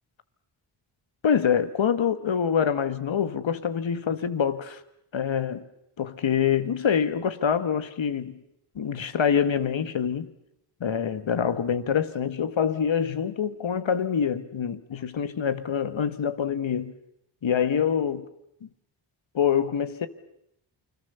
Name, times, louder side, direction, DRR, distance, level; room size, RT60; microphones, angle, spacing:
voice 1, 1.2-4.8 5.1-5.6 6.0-8.4 8.7-10.3 10.8-17.0 17.4-18.3 19.3-20.1, left 7 dB, 65° left, 1.7 m, -25 dB
28.5 x 21.5 x 7.0 m
cardioid pair, 45°, 49 cm